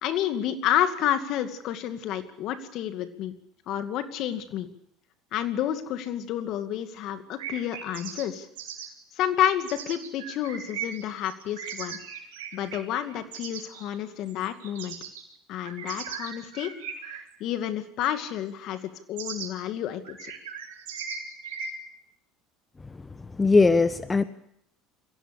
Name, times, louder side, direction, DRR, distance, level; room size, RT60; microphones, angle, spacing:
voice 1, 0.0-3.3 3.7-4.7 5.3-8.5 9.2-12.0 12.5-15.0 15.5-16.7 17.1-20.3, left 11 dB, 60° left, 9 dB, 2.3 m, -30 dB
sound 1, 7.4-8.2 8.6-8.9 9.7-13.9 14.3-15.2 15.6-17.3 18.0-18.1 19.2-19.5 20.0-21.7, right 7 dB, 90° right, 4.1 m, -38 dB
voice 2, 23.2-24.2, left 3 dB, 20° left, 12 dB, 1.1 m, -20 dB
23.0 x 16.5 x 8.4 m, 0.73 s
hypercardioid pair, 85°, 0 cm